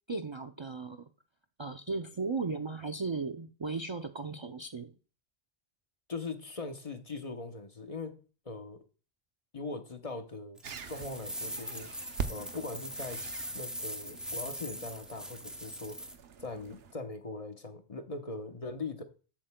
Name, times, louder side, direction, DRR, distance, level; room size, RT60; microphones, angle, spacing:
voice 1, 0.1-1.1 1.6-5.0, right 4 dB, 35° right, 0.5 m, -36 dB
voice 2, 6.1-8.1 8.4-8.8 9.5-10.6 10.9-13.2 13.5-16.1 16.4-19.0, left 3 dB, 40° left, 0.9 m, -41 dB
sound 1, 10.6-16.1, equal, ahead, 0.7 m, -41 dB
sound 2, 10.6-16.9, right 6 dB, 75° right, 0.9 m, -44 dB
10.5 x 7.7 x 2.2 m
omnidirectional pair, 1.0 m